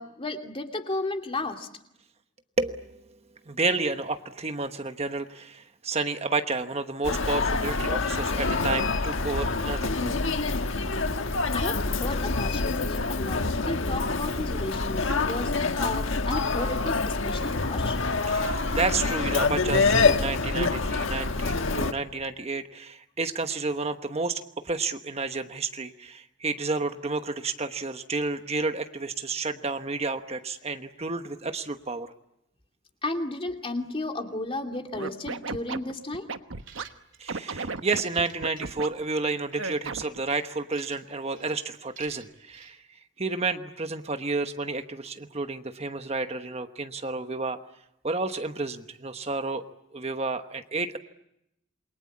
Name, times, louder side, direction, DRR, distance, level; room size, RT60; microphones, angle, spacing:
voice 1, 0.0-1.7 11.5-18.0 33.0-36.3, left 2 dB, 30° left, 4 dB, 2.7 m, -33 dB
voice 2, 2.6-3.0 3.5-10.1 18.3-32.1 37.2-47.6 48.0-49.6 49.9-51.0, right 3 dB, 30° right, 8 dB, 1.1 m, -31 dB
Human voice, 7.0-21.9, left 3 dB, 80° left, 1.5 m, -26 dB
Scratching (performance technique), 34.9-36.8 37.3-38.9 39.6-40.2, right 4 dB, 80° right, 1.2 m, -34 dB
sound 1, 36.6-37.3 37.7-39.2 39.5-39.8 40.3-41.1 41.3-41.5 42.0-42.7, right 8 dB, 65° right, 3.1 m, -50 dB
28.5 x 23.0 x 8.6 m, 0.81 s
head